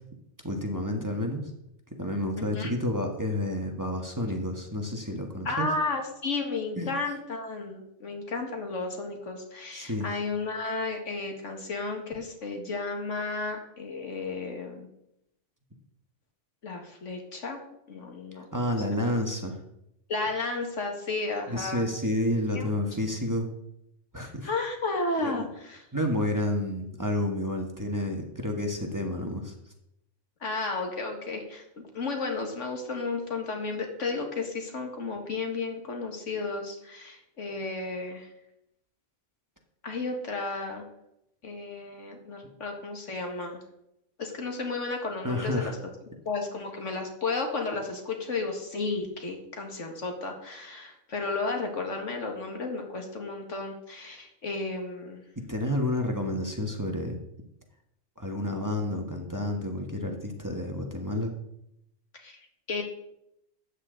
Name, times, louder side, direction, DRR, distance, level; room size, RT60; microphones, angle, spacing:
voice 1, 0.4-1.4 2.0-5.7 6.8-6.9 9.7-10.1 18.5-19.6 21.5-23.5 24.1-24.5 25.2-25.5 25.9-29.5 45.2-45.7 55.5-57.2 58.2-61.3, left 1 dB, 15° right, 2 dB, 1.4 m, -30 dB
voice 2, 2.4-2.7 5.5-14.9 16.6-17.6 17.9-18.5 18.9-19.2 20.1-21.9 22.5-22.7 24.2-25.8 30.4-31.6 31.9-38.3 39.8-40.8 41.4-43.6 44.2-45.8 46.3-55.2 62.1-62.4 62.7-62.8, left 3 dB, 85° left, 3 dB, 2.2 m, -33 dB
13.0 x 8.9 x 3.9 m, 0.80 s
omnidirectional pair, 1.2 m